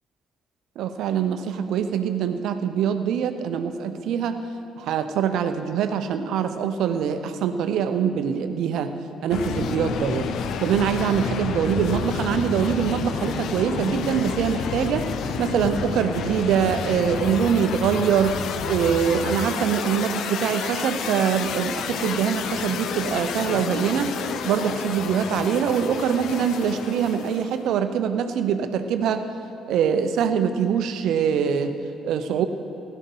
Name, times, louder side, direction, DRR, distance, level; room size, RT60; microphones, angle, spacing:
voice 1, 0.8-4.4 4.8-8.9 9.2-10.3 10.6-15.1 15.4-18.4 18.7-24.1 24.4-29.2 29.7-31.7 32.0-32.4, right 8 dB, 60° right, 9 dB, 0.8 m, -24 dB
sound 1, 9.3-27.6, left 6 dB, 60° left, 0.7 m, -30 dB
16.0 x 12.0 x 5.6 m, 2.7 s
figure-of-eight pair, 45°, 0 cm